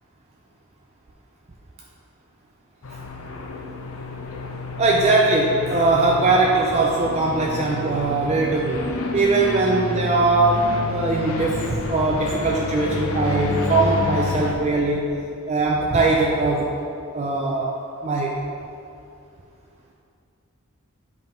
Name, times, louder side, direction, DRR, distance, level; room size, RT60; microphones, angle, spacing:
sound 1, 2.8-14.5, left 2 dB, 70° left, 0.6 m, -29 dB
voice 1, 4.8-8.9 9.1-15.1 15.5-16.7 17.1-17.7 18.0-18.3, right 3 dB, 30° right, -2 dB, 0.4 m, -20 dB
7.6 x 3.5 x 4.4 m, 2.5 s
head